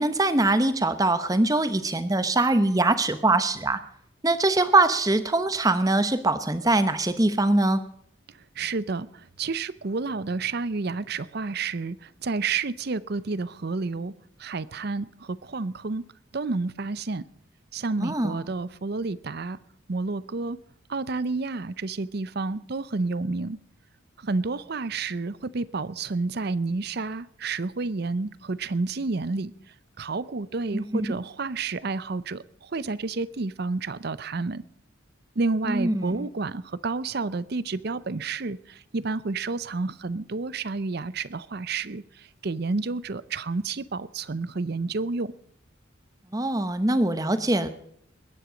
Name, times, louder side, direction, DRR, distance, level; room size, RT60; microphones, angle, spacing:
voice 1, 0.0-3.8 4.2-7.8 18.0-18.4 30.7-31.1 35.7-36.3 46.3-47.7, right 2 dB, 15° right, 0.9 m, -23 dB
voice 2, 8.3-14.1 14.4-16.1 16.3-17.2 17.7-19.6 19.9-20.6 20.9-23.6 24.2-34.6 35.4-45.3, right 3 dB, 50° right, 0.6 m, -30 dB
21.0 x 10.0 x 5.1 m
head